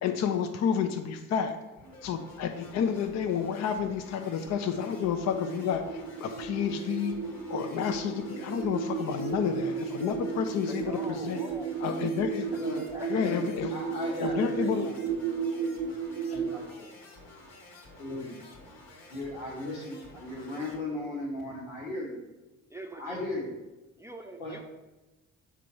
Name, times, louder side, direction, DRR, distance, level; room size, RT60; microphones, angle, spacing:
voice 1, 0.0-1.6 2.0-7.2 7.5-11.4 11.8-12.5 13.1-13.7 14.1-14.9 16.3-16.4, left 7 dB, 40° left, 6 dB, 0.6 m, -30 dB
sound 1, 1.8-20.8, left 2 dB, 55° left, 1.4 m, -51 dB
sound 2, 4.2-16.6, right 6 dB, 60° right, 0.7 m, -34 dB
voice 2, 9.9-10.2 10.7-11.8 12.8-13.1 22.7-23.2 24.0-24.6, right 1 dB, 5° right, 3 dB, 0.6 m, -43 dB
voice 3, 12.5-13.4 13.7-15.7 16.3-16.9 18.0-18.4 19.1-22.2 23.0-23.5 24.4-24.5, left 2 dB, 85° left, -4 dB, 1.5 m, -37 dB
6.1 x 4.5 x 4.3 m, 1.1 s
figure-of-eight pair, 45°, 41 cm